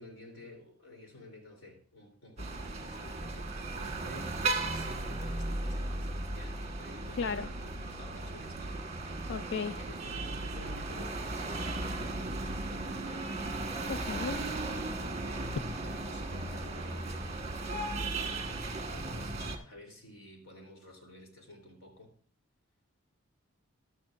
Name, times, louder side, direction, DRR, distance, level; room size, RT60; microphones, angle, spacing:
voice 1, 0.0-8.8 9.4-13.3 14.3-19.4 19.7-22.1, left 1 dB, 90° left, 3 dB, 3.4 m, -52 dB
sound 1, 2.4-19.6, right 2 dB, 35° right, 1.5 m, -36 dB
voice 2, 7.2-7.5 9.3-9.7 13.9-14.4, left 5 dB, 60° left, 10 dB, 0.4 m, -34 dB
13.5 x 11.5 x 2.5 m, 0.42 s
head